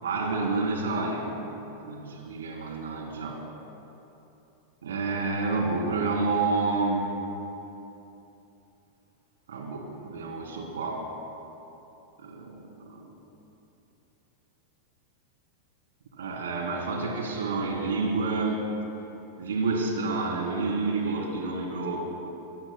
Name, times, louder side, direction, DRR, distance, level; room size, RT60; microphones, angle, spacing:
voice 1, 0.0-3.4 4.8-7.1 9.5-11.0 12.2-13.1 16.1-18.7 19.4-22.0, right 3 dB, 65° right, 0 dB, 3.2 m, -29 dB
26.5 x 23.0 x 2.2 m, 2.9 s
figure-of-eight pair, 90°, 0 cm